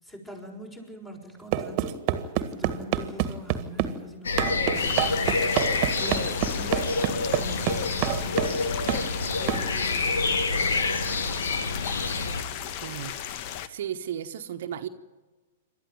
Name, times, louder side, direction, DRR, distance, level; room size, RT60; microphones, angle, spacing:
voice 1, 0.0-11.3, equal, 15° left, 6.2 m, -43 dB
sound 1, 1.5-4.0 4.4-8.6 8.9-9.1 9.5-9.7, right 12 dB, 45° right, 1.7 m, -27 dB
sound 2, 4.2-12.4, left 3 dB, 80° left, 2.0 m, -27 dB
sound 3, 4.7-13.7, left 10 dB, 50° left, 1.2 m, -36 dB
voice 2, 12.8-13.2 13.7-14.9, right 10 dB, 65° right, 1.2 m, -34 dB
28.0 x 12.5 x 9.3 m
hypercardioid pair, 110°, 0 cm